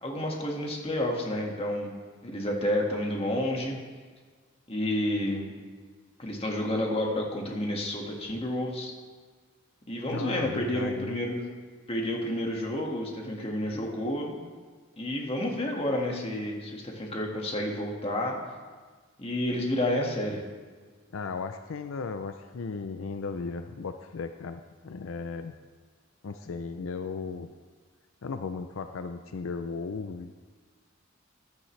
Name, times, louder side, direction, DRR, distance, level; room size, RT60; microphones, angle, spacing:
voice 1, 0.0-1.9 2.2-3.8 4.7-5.5 6.2-8.9 9.9-11.4 11.9-14.3 15.0-18.4 19.2-20.4, left 1 dB, 30° left, 0 dB, 1.8 m, -30 dB
voice 2, 10.1-11.2 21.1-25.6 26.2-27.5 28.2-30.3, left 4 dB, 80° left, 8 dB, 0.5 m, -36 dB
14.5 x 10.5 x 3.3 m, 1.5 s
head